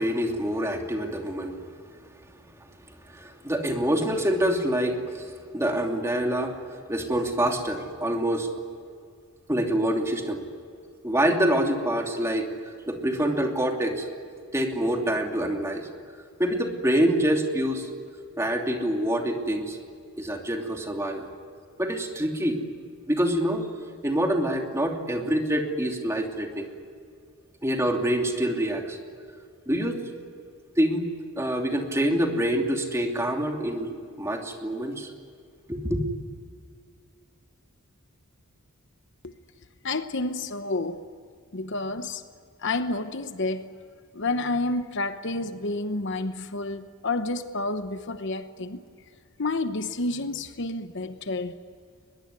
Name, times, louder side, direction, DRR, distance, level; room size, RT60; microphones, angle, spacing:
voice 1, 0.0-1.6 2.9-8.5 9.5-10.4 11.0-12.5 12.9-14.1 14.5-15.9 16.4-17.9 18.4-19.8 20.2-21.3 21.8-22.6 23.1-23.7 24.0-26.7 27.6-29.0 29.7-30.0 30.8-31.1 31.4-35.1 35.7-36.0, right 1 dB, 15° right, 2.9 m, -26 dB
voice 2, 39.8-41.1 41.5-42.2 42.6-43.8 44.1-48.8 49.4-51.6, left 2 dB, 55° left, 1.0 m, -30 dB
22.5 x 22.0 x 9.8 m
head